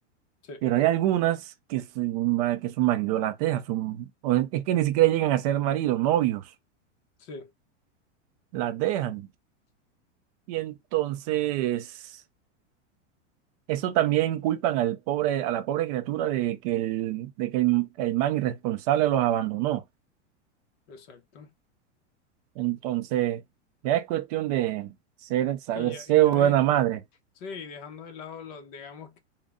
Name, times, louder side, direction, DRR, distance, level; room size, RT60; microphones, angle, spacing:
voice 1, 0.6-6.4 8.5-9.3 10.5-12.1 13.7-19.8 22.6-23.4 23.8-24.9 25.3-27.0, right 13 dB, 35° right, 0.5 m, -25 dB
voice 2, 7.2-7.5 20.9-21.5 25.7-26.6 27.4-29.2, left 5 dB, 35° left, 0.9 m, -41 dB
3.7 x 2.2 x 3.6 m
supercardioid pair, 165°, 36 cm